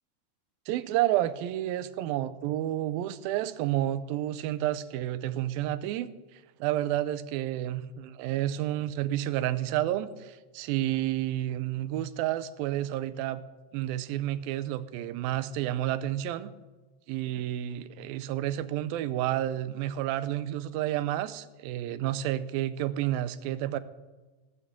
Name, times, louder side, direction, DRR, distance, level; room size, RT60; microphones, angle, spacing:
voice 1, 0.7-13.4 13.7-16.5 17.1-23.8, right 13 dB, 85° right, 13 dB, 2.4 m, -30 dB
20.0 x 9.7 x 3.7 m, 1.2 s
omnidirectional pair, 4.1 m